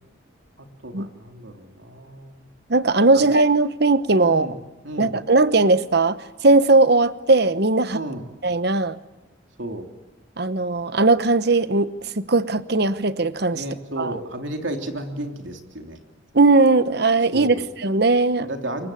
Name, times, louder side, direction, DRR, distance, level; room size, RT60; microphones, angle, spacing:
voice 1, 0.8-2.4 3.1-3.2 4.2-4.5 4.8-5.2 7.9-8.2 9.6-9.9 13.5-16.0 17.3-17.6 18.5-18.9, right 1 dB, 70° right, 4 dB, 3.1 m, -33 dB
voice 2, 2.7-4.5 5.0-8.0 8.4-9.0 10.4-11.9 12.2-13.6 14.0-14.1 16.3-18.5, right 3 dB, 55° right, 13 dB, 1.1 m, -18 dB
28.0 x 23.0 x 8.5 m, 1.1 s
head